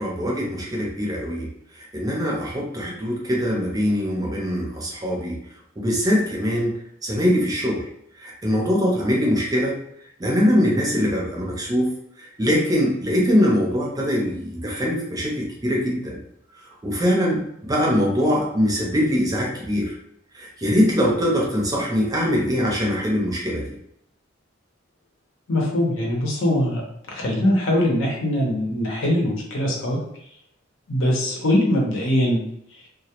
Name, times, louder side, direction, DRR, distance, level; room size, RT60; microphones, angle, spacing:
voice 1, 0.0-1.5 1.9-5.4 5.8-6.7 7.0-7.8 8.2-9.8 10.2-11.9 12.4-16.2 16.8-19.9 20.3-23.6, equal, 20° right, -2 dB, 0.5 m, -22 dB
voice 2, 25.5-26.8 27.1-30.0 30.9-32.4, left 1 dB, 75° left, -2 dB, 0.7 m, -22 dB
2.2 x 2.0 x 2.8 m, 0.72 s
head